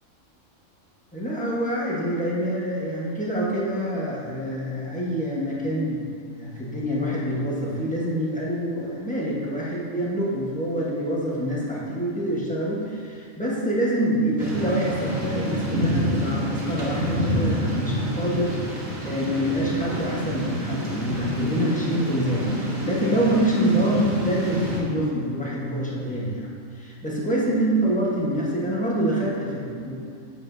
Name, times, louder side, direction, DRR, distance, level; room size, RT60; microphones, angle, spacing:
voice 1, 1.1-29.9, right 1 dB, 5° left, -6 dB, 1.1 m, -26 dB
Thunder / Rain, 14.4-24.8, equal, 90° right, 1.7 m, -28 dB
8.2 x 7.0 x 2.7 m, 2.2 s
omnidirectional pair, 1.4 m